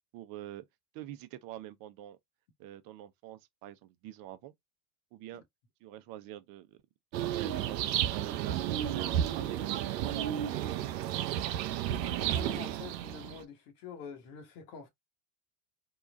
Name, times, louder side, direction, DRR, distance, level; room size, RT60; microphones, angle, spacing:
voice 1, 0.1-0.6 0.9-2.2 2.6-4.5 5.1-5.4 5.8-6.8 7.2-10.3, right 13 dB, 45° right, 0.7 m, -47 dB
sound 1, 7.1-13.4, right 11 dB, 85° right, 0.6 m, -32 dB
voice 2, 12.3-14.9, left 6 dB, 65° left, 1.4 m, -46 dB
3.8 x 2.4 x 2.4 m
hypercardioid pair, 95°, 49 cm